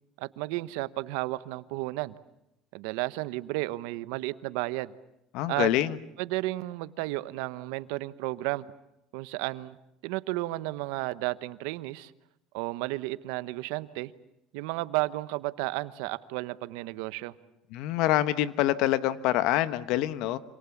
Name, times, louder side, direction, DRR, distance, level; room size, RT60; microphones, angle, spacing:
voice 1, 0.2-2.1 2.7-4.9 5.5-5.7 6.2-8.7 9.1-9.8 10.0-12.1 12.5-14.1 14.5-17.3, right 19 dB, 80° right, 15 dB, 1.0 m, -33 dB
voice 2, 5.3-6.0 17.7-20.4, left 14 dB, 70° left, 14 dB, 1.2 m, -26 dB
27.0 x 26.0 x 7.3 m, 0.85 s
supercardioid pair, 120°, 0 cm